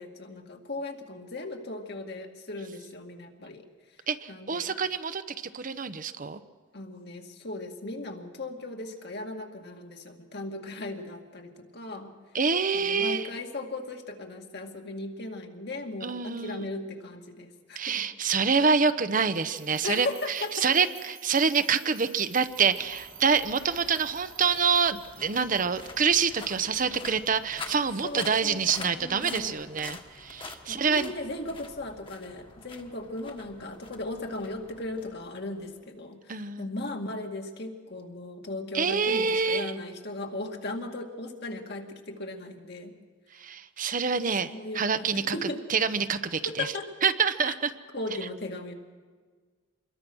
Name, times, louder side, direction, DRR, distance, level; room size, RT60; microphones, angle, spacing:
voice 1, 0.0-3.7 4.3-4.7 6.7-12.1 12.7-18.1 19.8-20.8 28.0-29.6 30.6-43.0 44.5-45.6 46.5-46.9 47.5-47.6 47.9-48.7, left 2 dB, 60° left, 3 dB, 2.2 m, -37 dB
voice 2, 4.1-5.2 5.5-6.4 12.3-13.3 16.0-16.7 17.8-31.1 36.3-36.7 38.7-39.7 43.4-46.7 47.0-47.7, right 5 dB, 45° right, 11 dB, 0.8 m, -26 dB
sound 1, 19.3-28.4, right 11 dB, 60° right, 1.8 m, -51 dB
sound 2, 22.3-35.7, left 3 dB, 25° left, 1.6 m, -46 dB
26.0 x 21.5 x 6.2 m, 1.5 s
head